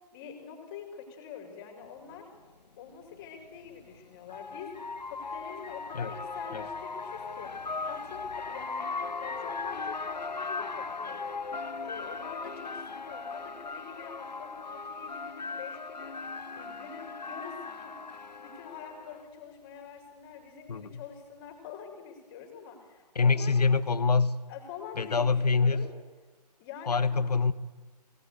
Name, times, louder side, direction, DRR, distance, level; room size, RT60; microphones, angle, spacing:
voice 1, 0.1-2.3 2.8-4.7 5.1-8.9 9.2-11.3 11.8-18.0 18.4-23.6 24.5-25.9 26.6-27.3, left 7 dB, 30° left, 4 dB, 5.3 m, -45 dB
sound 1, 2.1-2.2 3.6-19.2, left 4 dB, 85° left, 0.8 m, -38 dB
voice 2, 20.7-21.0 23.1-24.4 25.0-25.9 26.9-27.5, left 4 dB, 70° left, 15 dB, 1.3 m, -25 dB
22.0 x 18.5 x 8.4 m, 1.3 s
figure-of-eight pair, 130°, 21 cm